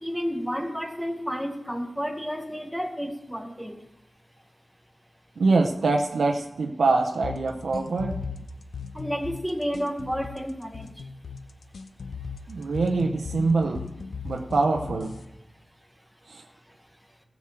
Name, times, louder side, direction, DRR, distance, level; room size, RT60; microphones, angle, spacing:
voice 1, 0.0-3.8 8.9-10.9, equal, ahead, 4 dB, 0.9 m, -31 dB
voice 2, 5.4-8.2 12.5-13.8 14.2-15.1 16.3-16.4, right 3 dB, 80° right, 4 dB, 0.8 m, -24 dB
sound 1, 7.2-15.2, left 5 dB, 85° left, 0.8 m, -37 dB
15.5 x 6.0 x 7.6 m, 0.90 s
wide cardioid pair, 80°, 0 cm